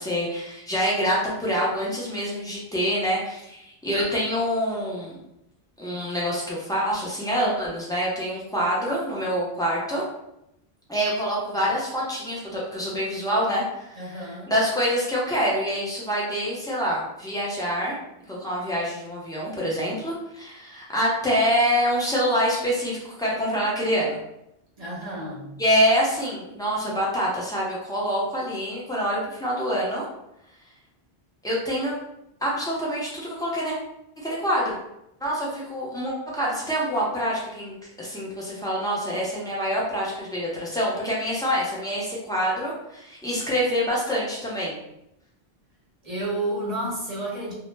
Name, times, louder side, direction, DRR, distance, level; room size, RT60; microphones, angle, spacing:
voice 1, 0.0-5.2 5.8-10.0 10.9-18.0 18.3-24.2 25.6-30.1 31.4-31.9 32.4-33.7 34.2-34.8 35.2-44.8, equal, 5° left, -6 dB, 0.4 m, -26 dB
voice 2, 14.0-14.5 24.8-25.5 46.0-47.5, right 1 dB, 45° right, -5 dB, 0.6 m, -31 dB
2.1 x 2.0 x 3.2 m, 0.83 s
omnidirectional pair, 1.1 m